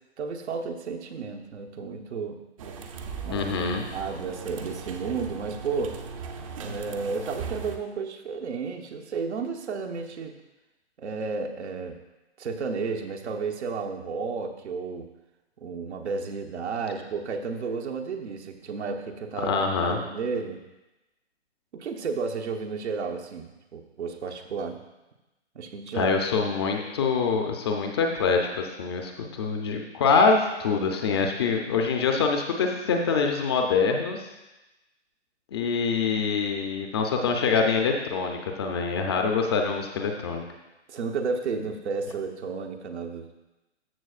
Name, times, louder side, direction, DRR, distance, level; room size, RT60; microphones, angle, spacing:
voice 1, 0.2-2.4 3.2-3.4 3.9-6.0 6.6-10.4 11.0-12.0 12.4-15.1 15.6-19.5 19.8-20.6 21.7-24.8 25.5-26.1 40.9-43.3, right 5 dB, 75° right, 3 dB, 1.1 m, -32 dB
sound 1, 2.6-7.8, right 5 dB, 30° right, 0.6 m, -38 dB
voice 2, 3.3-3.8 19.4-20.0 25.9-34.3 35.5-40.4, left 5 dB, 25° left, 3 dB, 0.5 m, -25 dB
14.0 x 6.2 x 2.4 m, 1.0 s
hypercardioid pair, 145°, 35 cm